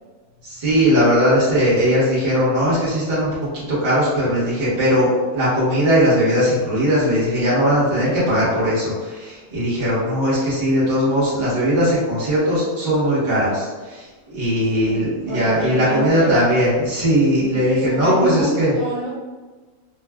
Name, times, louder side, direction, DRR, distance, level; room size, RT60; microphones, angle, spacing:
voice 1, 0.4-18.7, equal, 40° right, -9 dB, 1.3 m, -19 dB
voice 2, 14.7-16.4 17.5-19.2, right 2 dB, 70° right, -9 dB, 1.4 m, -28 dB
3.4 x 2.4 x 2.2 m, 1.3 s
omnidirectional pair, 1.5 m